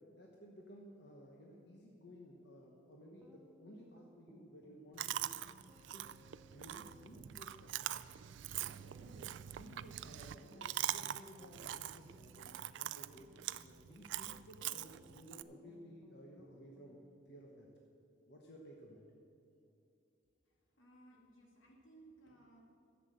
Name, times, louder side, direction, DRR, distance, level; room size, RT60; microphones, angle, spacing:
voice 1, 0.0-5.3 5.8-6.1 6.5-7.9 8.5-13.3 13.6-17.0 17.3-17.7 18.3-19.0, equal, 60° left, -1 dB, 1.2 m, -56 dB
sound 1, 3.2-17.1, right 1 dB, 10° right, 0.5 m, -64 dB
Chewing mastication, 5.0-15.4, right 12 dB, 70° right, 0.3 m, -43 dB
Knock, 5.4-6.2 6.6-7.4 7.9-8.5 9.0-9.8, right 2 dB, 50° right, 0.7 m, -70 dB
voice 2, 20.4-22.6, right 2 dB, 85° left, 0 dB, 2.1 m, -62 dB
11.5 x 7.5 x 7.7 m, 2.6 s
head